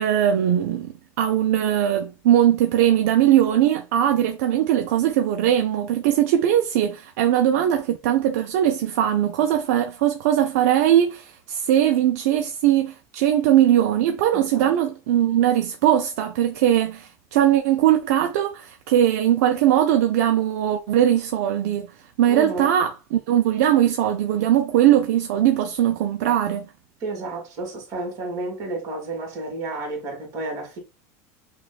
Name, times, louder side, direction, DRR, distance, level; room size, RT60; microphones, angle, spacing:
voice 1, 0.0-21.9 22.2-26.7, right 11 dB, 75° right, 0.5 m, -20 dB
voice 2, 14.3-14.7 22.3-22.7 27.0-30.8, right 2 dB, 45° right, 1.8 m, -31 dB
5.8 x 2.3 x 2.3 m
supercardioid pair, 135°, 9 cm